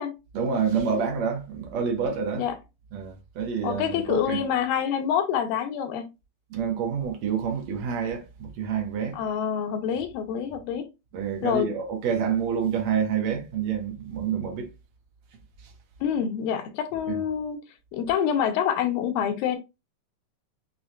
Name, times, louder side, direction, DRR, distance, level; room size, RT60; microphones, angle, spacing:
voice 1, 0.3-2.4 2.9-4.4 6.5-9.2 11.1-14.7 15.6-15.7 17.1-17.2, right 7 dB, 70° right, 1.8 m, -28 dB
voice 2, 3.6-6.1 9.1-10.9 11.4-11.7 16.0-17.6 17.9-19.6, left 8 dB, 85° left, 2.5 m, -26 dB
6.2 x 2.8 x 2.4 m
omnidirectional pair, 4.0 m